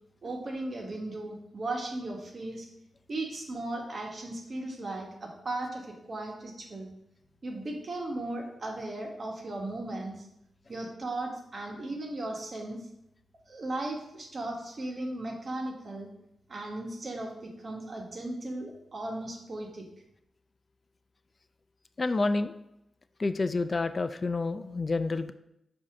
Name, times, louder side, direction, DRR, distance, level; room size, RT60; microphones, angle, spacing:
voice 1, 0.2-2.7 3.1-6.9 7.4-10.3 10.7-12.8 13.5-16.1 16.5-19.9, right 2 dB, 55° right, 1 dB, 1.3 m, -36 dB
voice 2, 22.0-22.5 23.2-25.3, left 3 dB, 45° left, 12 dB, 0.4 m, -28 dB
7.3 x 2.8 x 4.9 m, 0.82 s
supercardioid pair, 40°, 0 cm